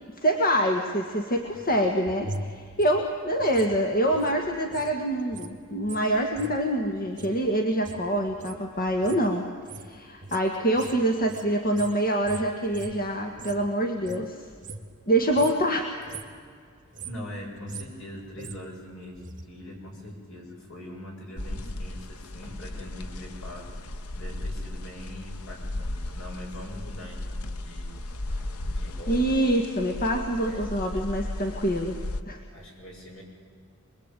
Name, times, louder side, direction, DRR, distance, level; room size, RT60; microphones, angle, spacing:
voice 1, 0.2-9.5 9.8-14.5 15.1-15.9 28.3-28.4 29.1-32.0 32.3-32.4, right 1 dB, 40° left, 3 dB, 1.8 m, -25 dB
sound 1, 1.4-4.9 5.2-13.7 14.0-15.0 15.3-15.7 16.0-16.4 16.8-19.4 19.7-19.8, right 2 dB, 35° right, 1.8 m, -42 dB
voice 2, 16.8-27.9 28.7-29.4 30.4-30.7 32.5-33.2, left 1 dB, 65° left, -1 dB, 7.8 m, -42 dB
sound 2, 21.4-32.2, left 1 dB, 85° left, 1.0 m, -35 dB
26.0 x 21.5 x 9.1 m, 2.2 s
head